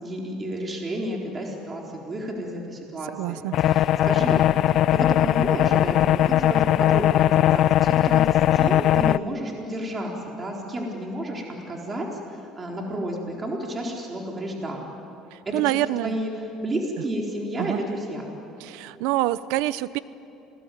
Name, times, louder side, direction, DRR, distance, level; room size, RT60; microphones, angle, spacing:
voice 1, 0.0-12.1 12.3-14.8 15.5-15.6 16.0-18.3, equal, 25° right, -1 dB, 4.1 m, -31 dB
voice 2, 3.2-3.5 15.3-16.2 17.6-17.8 18.6-20.0, right 16 dB, 85° right, 17 dB, 0.8 m, -26 dB
sound 1, 3.5-9.2, left 12 dB, 55° left, 0.6 m, -19 dB
29.0 x 20.0 x 9.4 m, 2.8 s
cardioid pair, 115°, 0 cm